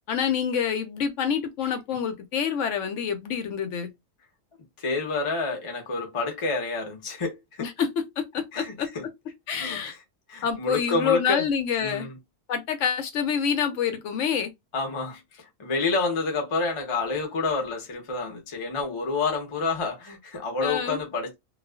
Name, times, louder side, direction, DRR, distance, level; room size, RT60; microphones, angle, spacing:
voice 1, 0.1-3.9 7.6-7.9 8.2-8.9 9.5-10.0 10.4-12.1 12.5-14.5 20.6-21.0, left 7 dB, 65° left, 0.8 m, -27 dB
voice 2, 4.8-7.4 8.5-9.0 9.6-10.0 10.3-11.4 11.8-12.2 14.7-21.3, left 3 dB, 40° left, 0.4 m, -28 dB
2.4 x 2.3 x 2.2 m
omnidirectional pair, 1.6 m